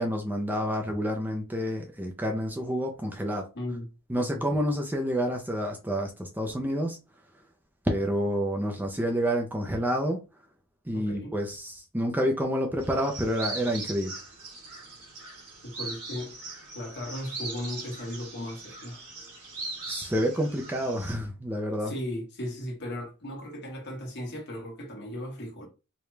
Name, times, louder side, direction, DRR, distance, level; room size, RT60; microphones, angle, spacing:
voice 1, 0.0-3.5 4.1-7.0 7.8-10.2 10.9-14.1 19.9-21.9, equal, 10° right, 0.5 m, -28 dB
voice 2, 3.5-3.9 4.1-4.4 10.9-11.3 15.6-16.3 16.7-19.0 21.8-25.7, left 1 dB, 50° left, 1.4 m, -36 dB
sound 1, 12.8-21.1, right 3 dB, 85° right, 2.0 m, -40 dB
4.8 x 2.2 x 3.2 m
head